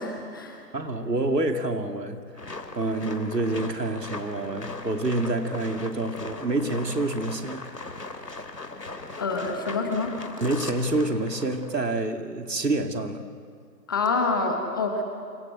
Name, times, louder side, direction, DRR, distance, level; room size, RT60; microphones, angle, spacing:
voice 1, 0.0-0.6 9.2-10.2 13.9-15.0, left 3 dB, 15° left, 4 dB, 1.2 m, -27 dB
voice 2, 0.7-2.3 2.7-7.7 8.3-8.4 10.4-13.3, right 2 dB, 75° right, 5 dB, 2.9 m, -27 dB
sound 1, 2.3-12.0, left 3 dB, 70° left, 3.5 m, -39 dB
27.5 x 26.0 x 7.9 m, 2.3 s
figure-of-eight pair, 150°, 50 cm